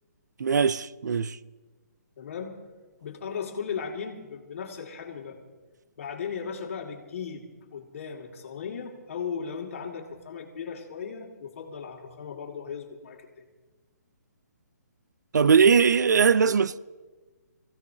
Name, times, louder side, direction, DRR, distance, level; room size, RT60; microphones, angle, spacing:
voice 1, 0.4-1.4 15.3-16.8, right 6 dB, 80° right, 0.5 m, -20 dB
voice 2, 2.2-2.5 3.0-5.4 6.0-13.4, left 6 dB, 50° left, 2.3 m, -37 dB
24.0 x 16.0 x 2.8 m
hypercardioid pair, 165°, 9 cm